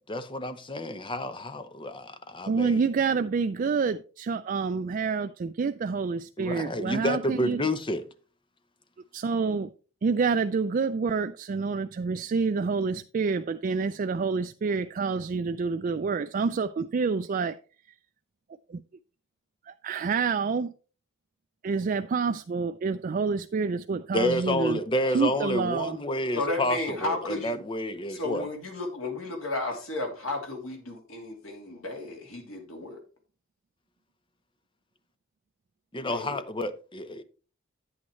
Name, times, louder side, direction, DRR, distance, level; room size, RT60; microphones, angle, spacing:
voice 1, 0.1-2.8 6.4-8.0 24.1-28.5 35.9-37.2, left 1 dB, 25° left, 0.7 m, -30 dB
voice 2, 2.5-7.6 9.1-9.7 10.0-17.6 18.7-18.8 19.7-20.7 21.6-24.8 25.1-26.0, right 5 dB, 40° right, 0.3 m, -28 dB
voice 3, 26.3-27.6 28.1-33.0 36.0-36.4, left 2 dB, 80° left, 2.9 m, -33 dB
9.5 x 8.6 x 3.1 m
head